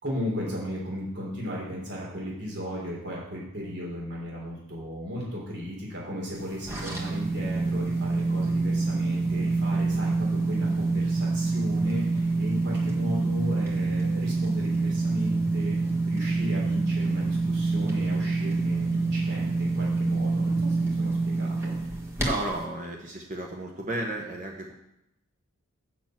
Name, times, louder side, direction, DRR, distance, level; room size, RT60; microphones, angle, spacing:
voice 1, 0.0-15.8 16.0-21.7, equal, 55° right, -4 dB, 3.3 m, -35 dB
sound 1, 6.4-22.6, right 3 dB, 10° right, 1.5 m, -26 dB
voice 2, 22.2-24.7, right 2 dB, 35° right, 0 dB, 1.0 m, -33 dB
7.0 x 6.0 x 7.6 m, 0.84 s
head